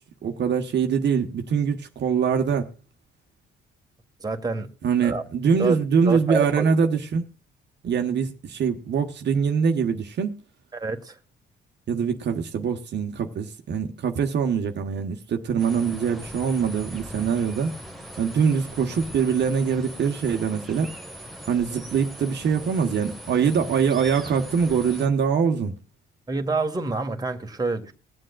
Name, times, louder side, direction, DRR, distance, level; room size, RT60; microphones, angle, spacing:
voice 1, 0.2-2.7 4.8-7.2 7.8-10.3 11.9-17.7 18.2-20.9 21.5-25.7, right 6 dB, 60° right, 1.1 m, -23 dB
voice 2, 4.2-4.7 5.0-5.2 5.6-5.8 6.0-6.6 10.7-11.2 26.3-27.9, right 3 dB, 20° right, 1.5 m, -27 dB
sound 1, 15.6-25.1, equal, ahead, 1.5 m, -40 dB
21.0 x 7.6 x 2.3 m
cardioid pair, 90°, 20 cm